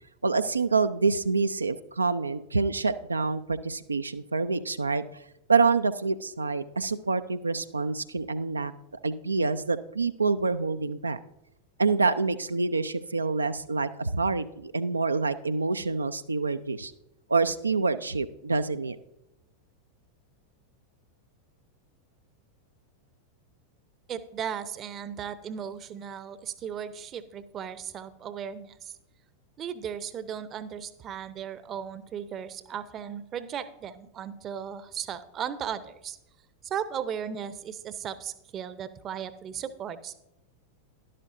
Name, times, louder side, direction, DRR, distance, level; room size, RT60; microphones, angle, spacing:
voice 1, 0.2-5.0 5.5-8.7 9.0-11.2 11.8-16.9 17.3-19.0, right 4 dB, 80° right, 10 dB, 0.3 m, -27 dB
voice 2, 24.1-28.9 29.6-36.2 36.6-40.1, right 8 dB, 30° right, 15 dB, 0.6 m, -36 dB
12.0 x 11.5 x 2.6 m, 0.86 s
figure-of-eight pair, 90°, 0 cm